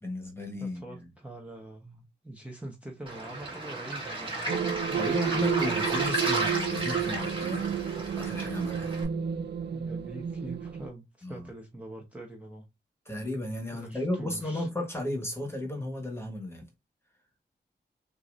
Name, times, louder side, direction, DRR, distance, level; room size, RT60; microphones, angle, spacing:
voice 1, 0.0-1.0 5.0-7.8 8.1-9.0 11.2-11.5 13.0-16.7, left 1 dB, 15° left, 1.4 m, -34 dB
voice 2, 0.6-5.4 9.7-12.6 13.7-14.7, right 1 dB, 5° right, 1.1 m, -44 dB
Waves surf, 3.1-9.0, right 2 dB, 30° right, 2.4 m, -33 dB
sound 1, 4.5-10.9, right 8 dB, 70° right, 0.6 m, -31 dB
6.6 x 2.7 x 2.6 m
wide cardioid pair, 180°, 18 cm